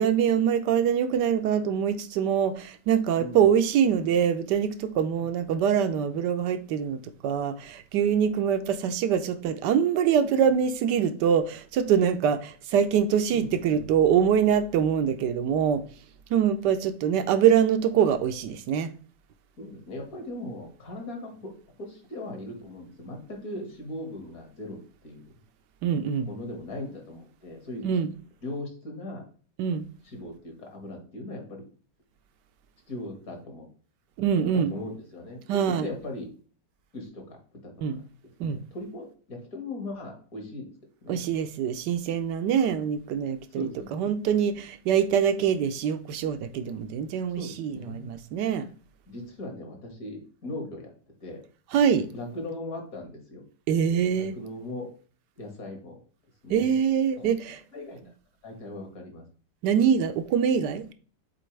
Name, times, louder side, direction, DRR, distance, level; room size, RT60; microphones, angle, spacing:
voice 1, 0.0-15.8 16.3-18.9 25.8-26.3 27.8-28.1 29.6-29.8 34.2-34.7 35.5-35.9 37.8-38.0 38.4-38.6 41.1-48.7 51.7-52.1 53.7-54.4 56.5-57.4 59.6-60.8, right 8 dB, 75° right, 1.3 m, -24 dB
voice 2, 13.3-13.8 19.6-21.5 21.8-24.8 25.0-25.2 26.3-27.9 28.4-29.2 30.0-31.7 32.9-33.7 34.4-35.4 35.8-36.3 36.9-37.4 37.6-37.7 38.4-40.7 41.0-41.2 43.5-44.0 46.6-46.9 47.4-48.1 49.1-50.9 51.2-51.4 52.1-53.4 54.1-54.9 55.4-56.0 56.4-56.7 57.2-57.3 57.7-58.0 58.4-59.2, left 1 dB, 55° left, 2.1 m, -39 dB
7.6 x 4.2 x 3.2 m
omnidirectional pair, 1.9 m